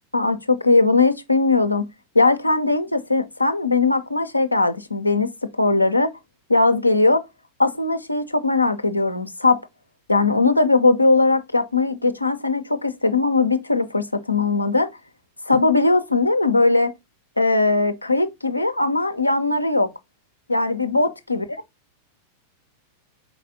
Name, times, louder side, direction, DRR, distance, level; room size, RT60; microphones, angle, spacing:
voice 1, 0.1-1.9 2.1-6.1 6.5-7.2 7.6-9.6 10.1-14.9 15.5-16.9 17.4-19.9 20.5-21.4, left 3 dB, 85° left, 0.5 m, -19 dB
4.6 x 4.0 x 2.6 m
figure-of-eight pair, 90°, 0 cm